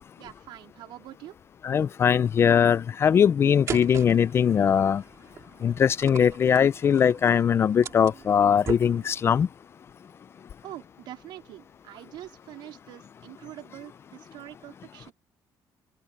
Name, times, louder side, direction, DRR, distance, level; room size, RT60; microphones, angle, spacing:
voice 1, 0.2-1.4 10.6-15.1, right 14 dB, 80° right, 3.9 m, -44 dB
voice 2, 1.6-5.0 5.6-9.5, left 8 dB, 30° left, 0.4 m, -21 dB
sound 1, 3.7-9.4, right 7 dB, 40° right, 2.2 m, -40 dB
open air
cardioid pair, 160°, 8 cm